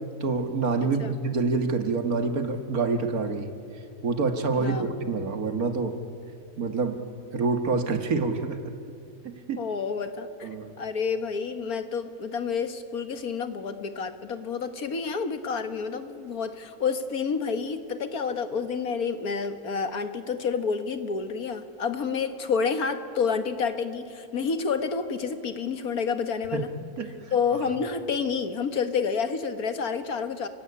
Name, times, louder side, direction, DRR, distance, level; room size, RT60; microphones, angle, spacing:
voice 1, 0.2-3.5 4.0-5.9 6.6-7.0 7.3-8.6 9.2-9.6 10.4-10.7 26.5-27.6, right 4 dB, 85° right, 7 dB, 2.1 m, -27 dB
voice 2, 4.5-5.1 9.6-10.5 10.8-26.7 27.3-30.5, left 5 dB, 90° left, 9 dB, 2.0 m, -29 dB
29.5 x 17.0 x 9.8 m, 2.6 s
omnidirectional pair, 1.5 m